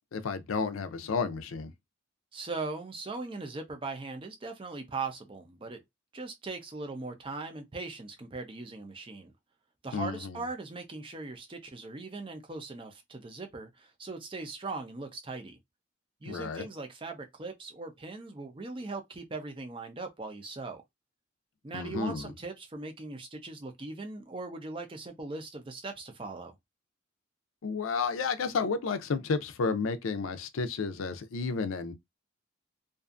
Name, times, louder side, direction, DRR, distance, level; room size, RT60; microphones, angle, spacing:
voice 1, 0.1-1.7 9.9-10.4 16.2-16.7 21.7-22.2 27.6-31.9, left 4 dB, 85° left, 0.5 m, -31 dB
voice 2, 2.3-5.8 6.1-9.3 9.8-15.6 16.2-20.8 21.6-26.5, right 3 dB, 25° right, 0.4 m, -40 dB
2.5 x 2.4 x 2.4 m
head